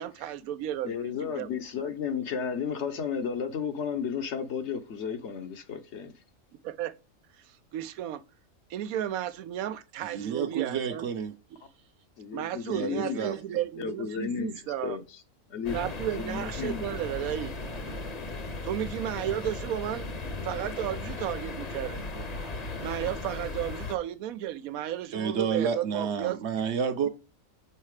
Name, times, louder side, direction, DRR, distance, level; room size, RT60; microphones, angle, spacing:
voice 1, 0.0-1.5 6.6-6.9 7.7-8.2 8.7-11.1 12.3-15.0 15.7-17.6 18.6-20.1 20.4-22.3 22.8-26.4, right 11 dB, 85° right, 1.1 m, -33 dB
voice 2, 0.8-6.1 12.2-13.2 13.8-15.0 15.5-15.8 16.1-16.8, left 7 dB, 60° left, 1.0 m, -33 dB
voice 3, 10.0-11.3 12.7-13.6 25.1-27.1, right 7 dB, 60° right, 0.9 m, -30 dB
sound 1, 15.6-23.9, left 3 dB, 35° left, 0.8 m, -37 dB
5.7 x 4.2 x 4.7 m
omnidirectional pair, 1.4 m